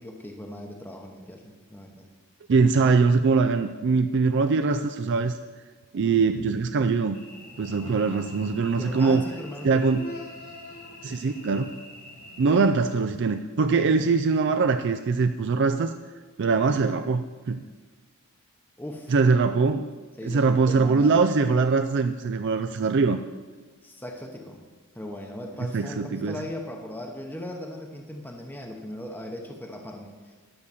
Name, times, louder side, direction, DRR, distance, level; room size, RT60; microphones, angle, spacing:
voice 1, 0.0-2.1 8.8-9.9 13.7-14.1 18.8-19.1 20.2-21.2 23.8-24.6 24.9-30.3, left 1 dB, 10° left, 2 dB, 0.8 m, -38 dB
voice 2, 2.5-5.4 5.9-7.2 7.6-9.2 9.6-10.1 11.0-11.7 12.4-15.9 16.4-17.6 19.1-19.9 20.2-23.2 25.7-26.4, right 4 dB, 55° right, 7 dB, 0.4 m, -22 dB
Cricket / Buzz, 7.1-12.6, left 1 dB, 80° left, 2.9 m, -44 dB
11.0 x 6.5 x 7.0 m, 1.4 s
head